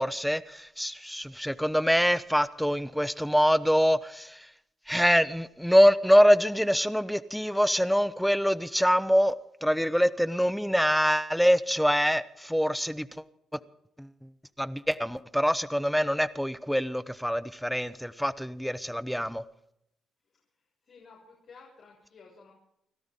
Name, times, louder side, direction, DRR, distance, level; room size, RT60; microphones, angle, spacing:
voice 1, 0.0-4.5 4.9-13.1 14.0-14.1 14.6-19.4, equal, ahead, 16 dB, 0.9 m, -24 dB
voice 2, 20.2-22.5, left 4 dB, 55° left, -5 dB, 6.7 m, -54 dB
29.5 x 13.0 x 3.7 m, 0.78 s
cardioid pair, 80°, 0 cm